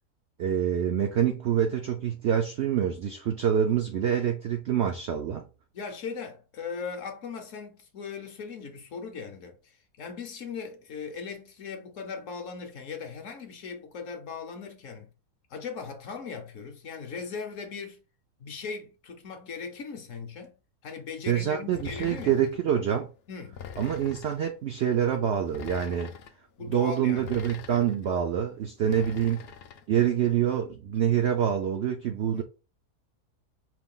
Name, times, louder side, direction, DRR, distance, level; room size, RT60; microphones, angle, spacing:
voice 1, 0.4-5.5 21.3-23.1 23.8-26.1 26.7-29.4 29.9-32.4, right 9 dB, 70° right, 0.6 m, -26 dB
voice 2, 5.7-15.1 15.5-18.0 18.4-20.5 20.8-22.4 23.3-23.6 26.6-27.4 28.8-29.2 32.3-32.4, left 5 dB, 60° left, 1.0 m, -39 dB
sound 1, 21.8-22.6 23.5-24.4 25.4-26.3 27.2-28.1 28.9-29.8, left 7 dB, 75° left, 0.5 m, -43 dB
4.7 x 2.3 x 3.6 m
omnidirectional pair, 1.7 m